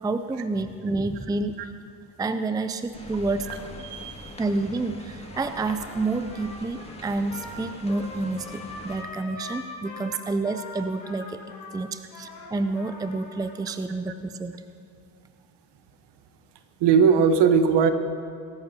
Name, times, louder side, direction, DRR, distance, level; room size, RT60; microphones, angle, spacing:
voice 1, 0.0-1.7 2.2-3.5 4.4-11.4 11.7-14.6, right 3 dB, 10° right, 10 dB, 0.6 m, -29 dB
sound 1, 2.9-9.0, left 2 dB, 15° left, 2.2 m, -43 dB
voice 2, 3.8-4.3 16.8-17.9, right 6 dB, 55° right, 9 dB, 1.3 m, -19 dB
Trumpet, 5.3-13.6, left 2 dB, 85° left, 4.3 m, -42 dB
22.5 x 13.5 x 2.9 m, 2.3 s
hypercardioid pair, 50°, 48 cm